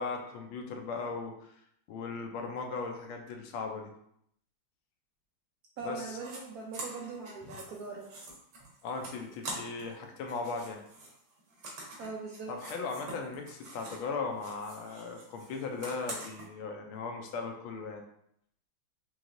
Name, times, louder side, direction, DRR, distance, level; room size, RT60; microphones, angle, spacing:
voice 1, 0.0-1.5 1.9-3.9 5.8-6.2 7.4-7.6 8.8-10.8 12.5-18.0, left 4 dB, 85° left, 3 dB, 1.5 m, -38 dB
voice 2, 5.8-8.1 12.0-12.5, right 4 dB, 70° right, -1 dB, 0.8 m, -41 dB
sound 1, 6.2-6.4 6.7-10.0 10.2-14.1 14.4-16.5, right 2 dB, 90° right, 1.9 m, -45 dB
4.8 x 3.1 x 2.5 m, 0.72 s
omnidirectional pair, 2.2 m